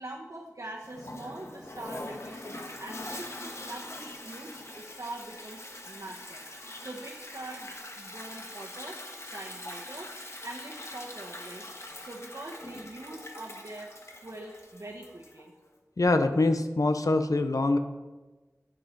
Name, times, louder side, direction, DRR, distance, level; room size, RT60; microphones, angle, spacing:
voice 1, 0.0-10.1 10.4-13.9 14.2-15.5, right 1 dB, 70° right, -2 dB, 1.1 m, -44 dB
Toilet flush, 0.8-15.5, left 1 dB, 55° left, 1.4 m, -43 dB
voice 2, 16.0-17.8, left 2 dB, 85° left, 8 dB, 0.8 m, -24 dB
9.8 x 7.5 x 5.2 m, 1.2 s
wide cardioid pair, 40°, 6 cm